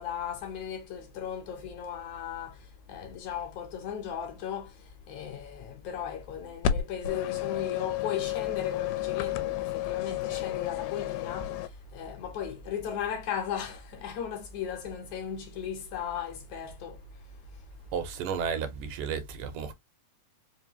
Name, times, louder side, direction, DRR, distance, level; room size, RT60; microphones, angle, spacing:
voice 1, 0.0-17.7, left 8 dB, 70° left, 2.0 m, -37 dB
sound 1, 6.6-11.7, left 12 dB, 85° left, 2.2 m, -31 dB
sound 2, 8.2-18.9, right 4 dB, 20° left, 0.5 m, -52 dB
voice 2, 17.9-19.7, right 6 dB, 80° right, 2.2 m, -33 dB
5.3 x 2.5 x 2.8 m
omnidirectional pair, 3.9 m